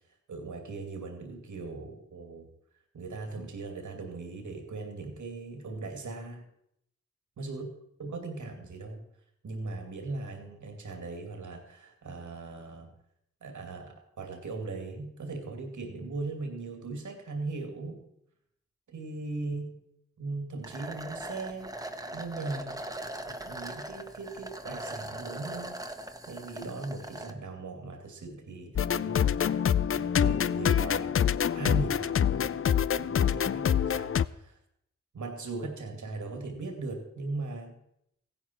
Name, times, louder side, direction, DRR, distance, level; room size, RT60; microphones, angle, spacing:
voice 1, 0.3-2.5 2.9-6.4 7.4-7.7 8.0-9.0 9.4-12.9 13.4-18.0 18.9-19.8 20.2-21.7 22.1-22.9 23.3-25.8 26.3-31.2 31.6-34.6 35.1-37.7, right 3 dB, 75° right, 4 dB, 2.5 m, -39 dB
sound 1, 20.6-27.3, right 1 dB, 10° right, 1.4 m, -40 dB
sound 2, 28.8-34.3, left 8 dB, 45° left, 0.5 m, -26 dB
15.0 x 11.0 x 4.5 m, 0.75 s
cardioid pair, 40°, 30 cm